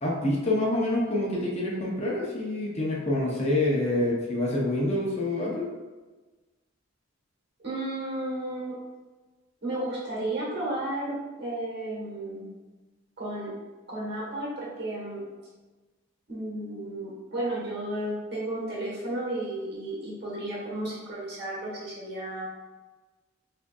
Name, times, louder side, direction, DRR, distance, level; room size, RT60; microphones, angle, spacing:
voice 1, 0.0-5.7, left 1 dB, 30° left, -3 dB, 0.6 m, -27 dB
voice 2, 7.6-8.8 9.6-12.5 13.2-13.5 13.9-15.2 16.3-22.5, right 1 dB, 50° right, -5 dB, 1.2 m, -33 dB
4.8 x 2.6 x 2.3 m, 1.2 s
head